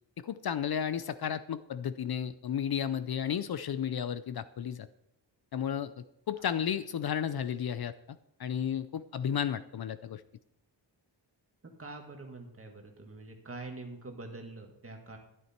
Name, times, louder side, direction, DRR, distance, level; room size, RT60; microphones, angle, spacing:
voice 1, 0.2-4.9 5.5-10.2, left 8 dB, 60° left, 14 dB, 0.5 m, -33 dB
voice 2, 11.8-15.2, right 2 dB, 30° right, 2 dB, 1.9 m, -45 dB
12.5 x 11.0 x 4.4 m, 0.81 s
wide cardioid pair, 175°, 44 cm